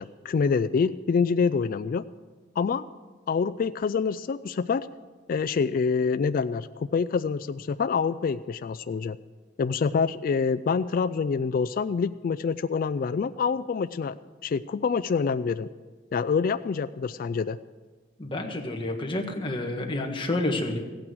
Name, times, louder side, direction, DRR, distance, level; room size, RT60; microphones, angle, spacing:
voice 1, 0.0-2.0 2.6-2.9 3.3-4.9 5.3-9.2 9.6-14.1 14.4-15.7 16.1-17.6, left 5 dB, 50° left, 12 dB, 0.3 m, -26 dB
voice 2, 18.2-20.8, left 1 dB, 30° left, 3 dB, 1.5 m, -29 dB
16.0 x 9.0 x 6.2 m, 1.3 s
head